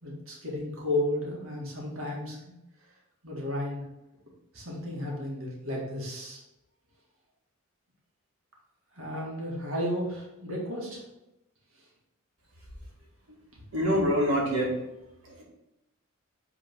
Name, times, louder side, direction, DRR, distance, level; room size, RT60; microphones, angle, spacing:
voice 1, 0.0-2.5 3.2-3.8 4.5-6.4 8.9-11.0, left 1 dB, 75° right, -3 dB, 2.1 m, -33 dB
voice 2, 13.7-14.7, equal, 90° right, -4 dB, 2.3 m, -25 dB
8.3 x 4.0 x 3.7 m, 0.91 s
head